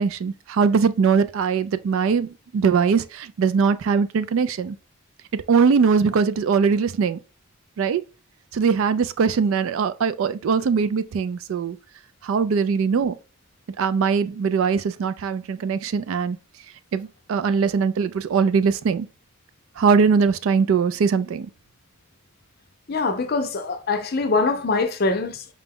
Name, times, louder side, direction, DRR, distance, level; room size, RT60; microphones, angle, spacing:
voice 1, 0.0-4.8 5.3-7.2 7.8-8.0 8.5-11.8 12.2-13.1 13.8-16.4 16.9-19.1 19.8-21.5, right 5 dB, 70° right, 0.3 m, -21 dB
voice 2, 22.9-25.5, left 3 dB, 45° left, 0.5 m, -23 dB
4.9 x 2.2 x 3.5 m
head